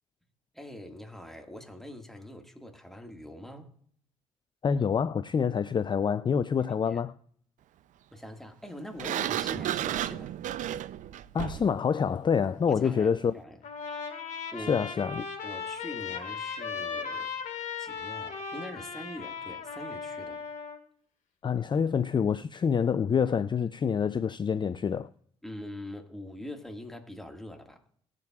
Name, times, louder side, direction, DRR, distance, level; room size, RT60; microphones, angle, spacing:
voice 1, 0.5-3.8 6.7-7.0 8.1-10.4 12.7-13.6 14.5-14.9 15.4-17.4 17.8-20.4 25.4-27.9, left 1 dB, ahead, 1.8 m, -43 dB
voice 2, 4.6-7.2 11.3-13.3 14.7-15.2 21.4-25.1, left 6 dB, 30° left, 0.5 m, -27 dB
Sliding door, 9.0-11.8, right 12 dB, 60° right, 0.5 m, -32 dB
Trumpet, 13.6-20.8, left 5 dB, 55° left, 1.9 m, -37 dB
20.5 x 7.4 x 2.4 m
hypercardioid pair, 50°, 15 cm